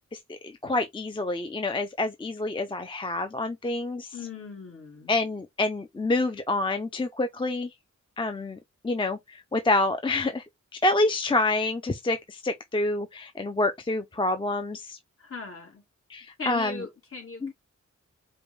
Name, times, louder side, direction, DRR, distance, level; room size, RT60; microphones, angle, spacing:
voice 1, 0.3-4.1 5.1-7.7 8.2-8.6 8.8-10.4 10.8-15.0 16.1-16.8 17.4-17.5, left 2 dB, 15° left, 0.4 m, -27 dB
voice 2, 4.1-5.2 15.2-15.8 16.4-17.5, left 4 dB, 45° left, 1.6 m, -39 dB
5.0 x 2.2 x 3.1 m
wide cardioid pair, 125°, 30 cm